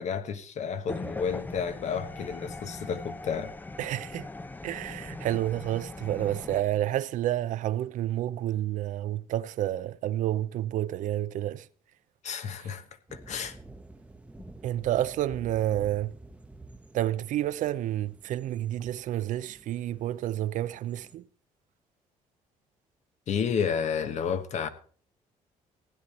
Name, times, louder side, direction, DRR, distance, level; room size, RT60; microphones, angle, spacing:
voice 1, 0.0-3.5 12.2-12.8 13.1-13.6 23.3-24.7, left 7 dB, 55° left, 1.2 m, -31 dB
sound 1, 0.9-6.6, left 2 dB, 15° left, 0.6 m, -40 dB
voice 2, 3.8-4.3 4.6-11.7 14.6-16.1 16.9-21.2, right 13 dB, 70° right, 0.5 m, -29 dB
sound 2, 13.1-21.1, right 2 dB, 10° right, 1.0 m, -50 dB
15.5 x 9.3 x 4.2 m
cardioid pair, 95°, 14 cm